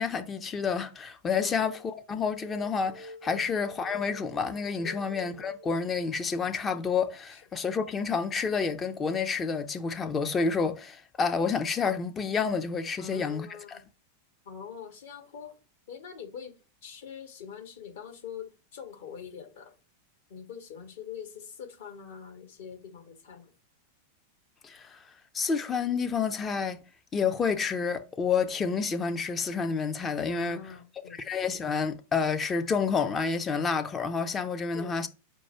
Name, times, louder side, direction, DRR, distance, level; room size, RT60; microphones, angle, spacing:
voice 1, 0.0-13.5 24.6-25.0 25.3-26.8 27.1-30.6 31.2-35.1, left 5 dB, 20° left, 0.5 m, -29 dB
sound 1, 1.6-1.9 2.3-6.1, equal, 85° left, 2.3 m, -47 dB
voice 2, 13.0-13.8 14.4-15.6 15.9-19.8 20.3-23.5 30.3-31.2 34.7-35.0, left 7 dB, 55° left, 1.3 m, -44 dB
4.5 x 2.3 x 4.4 m
figure-of-eight pair, 90°, 0 cm